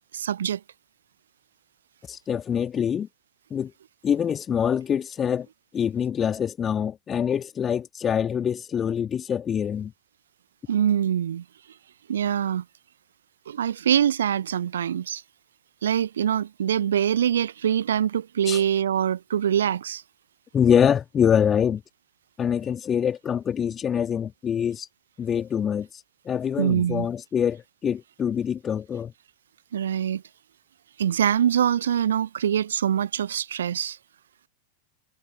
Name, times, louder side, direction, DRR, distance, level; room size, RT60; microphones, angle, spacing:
voice 1, 0.1-0.6 10.7-11.4 12.1-12.6 13.5-15.2 15.8-20.0 26.6-27.1 29.7-30.2 31.0-34.0, right 9 dB, 65° right, 0.9 m, -24 dB
voice 2, 2.1-3.1 3.5-3.7 4.0-5.5 5.7-9.9 18.5-18.6 20.5-21.8 22.4-24.9 25.2-25.9 26.3-29.1, left 8 dB, 25° left, 2.3 m, -25 dB
figure-of-eight pair, 90°, 0 cm